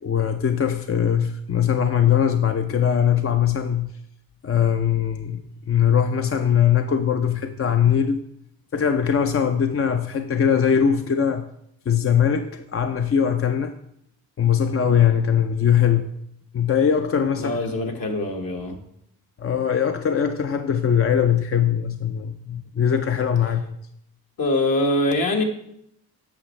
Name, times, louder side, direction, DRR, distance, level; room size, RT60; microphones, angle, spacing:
voice 1, 0.0-3.9 4.4-5.4 5.7-8.2 8.7-11.5 11.9-13.7 14.4-16.1 16.5-17.6 19.4-23.8, left 8 dB, 35° left, 0.5 m, -21 dB
voice 2, 17.4-18.8 24.4-25.4, left 1 dB, 60° left, 1.5 m, -23 dB
8.6 x 6.2 x 3.2 m
supercardioid pair, 50°, 39 cm